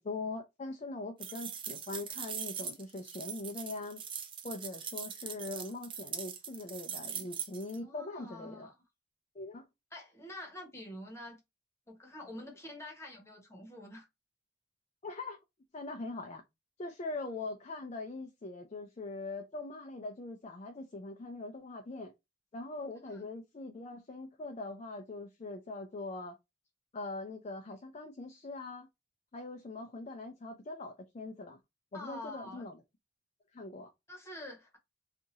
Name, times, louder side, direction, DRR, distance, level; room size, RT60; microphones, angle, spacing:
voice 1, 0.0-4.0 4.4-8.7 9.3-9.7 15.0-15.4 15.7-16.4 16.8-22.1 22.5-26.4 26.9-28.9 29.3-31.6 31.9-32.8 33.5-33.9, left 2 dB, 40° left, 0.4 m, -42 dB
sound 1, 1.2-7.8, right 7 dB, 30° right, 0.4 m, -41 dB
voice 2, 7.8-8.7 9.9-11.4 11.9-14.1 23.0-23.3 31.9-32.7 34.1-34.8, left 1 dB, 15° left, 1.1 m, -47 dB
2.7 x 2.5 x 4.0 m
head